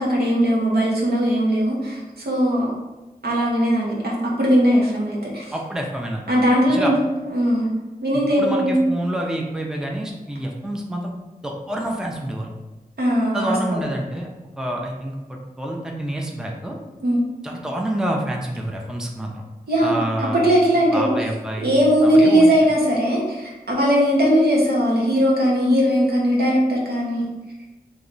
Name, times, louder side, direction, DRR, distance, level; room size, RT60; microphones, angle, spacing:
voice 1, 0.0-2.7 3.2-5.5 6.3-7.7 8.0-8.8 13.0-13.8 17.0-17.3 19.7-21.1 21.6-27.2, equal, 80° right, -4 dB, 1.1 m, -19 dB
voice 2, 5.5-6.2 6.7-6.9 8.4-11.1 11.4-12.5 13.3-14.3 14.6-16.8 17.4-19.4 19.8-20.4 20.9-21.7 22.0-22.5, right 1 dB, 5° right, 0 dB, 0.6 m, -27 dB
3.2 x 3.0 x 4.0 m, 1.1 s
wide cardioid pair, 80°, 16 cm